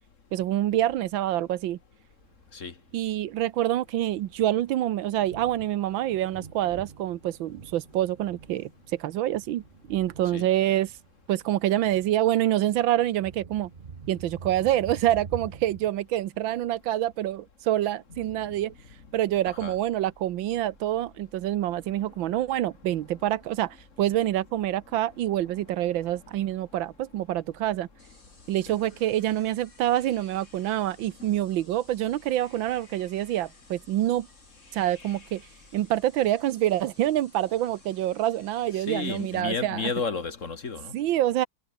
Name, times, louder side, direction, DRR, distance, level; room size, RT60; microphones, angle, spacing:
voice 1, 0.3-1.8 2.9-9.6 9.9-10.9 11.3-13.7 14.1-18.7 19.1-27.9 28.5-34.3 34.7-35.4 35.7-39.8 40.9-41.5, right 13 dB, 85° right, 1.6 m, -26 dB
Thunder, 2.2-15.9, right 5 dB, 35° right, 1.1 m, -46 dB
sound 1, 18.6-36.3, equal, ahead, 6.2 m, -62 dB
voice 2, 19.4-19.8 28.7-28.8 31.2-31.3 34.8-35.3 38.7-40.9, left 4 dB, 40° left, 2.2 m, -33 dB
sound 2, 28.0-39.4, left 2 dB, 70° left, 8.7 m, -57 dB
omnidirectional pair, 2.1 m